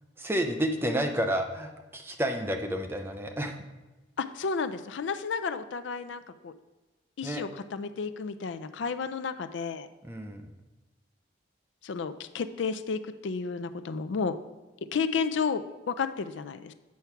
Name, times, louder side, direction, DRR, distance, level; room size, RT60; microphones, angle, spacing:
voice 1, 0.2-3.6 7.2-7.4 10.0-10.4, equal, 10° right, 4 dB, 0.6 m, -30 dB
voice 2, 4.2-6.5 7.2-9.9 11.8-14.4 14.9-16.7, left 5 dB, 70° left, 11 dB, 0.4 m, -32 dB
8.4 x 4.5 x 5.8 m, 1.2 s
head